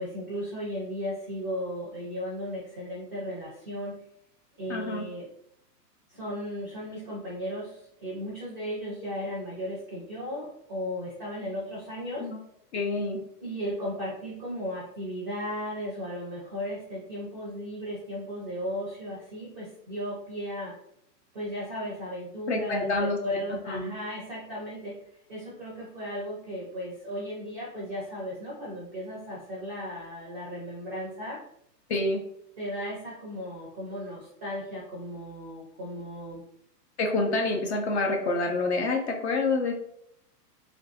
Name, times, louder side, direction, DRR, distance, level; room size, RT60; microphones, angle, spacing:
voice 1, 0.0-4.0 4.6-5.3 6.1-12.3 13.4-20.7 21.3-25.0 25.3-31.4 32.6-36.4, equal, 10° right, -6 dB, 0.4 m, -35 dB
voice 2, 4.7-5.1 12.2-12.4 12.7-13.2 22.5-23.2 23.7-23.9 31.9-32.2 37.0-39.7, left 2 dB, 45° left, 3 dB, 0.5 m, -27 dB
3.1 x 2.5 x 2.7 m, 0.73 s
hypercardioid pair, 150°, 49 cm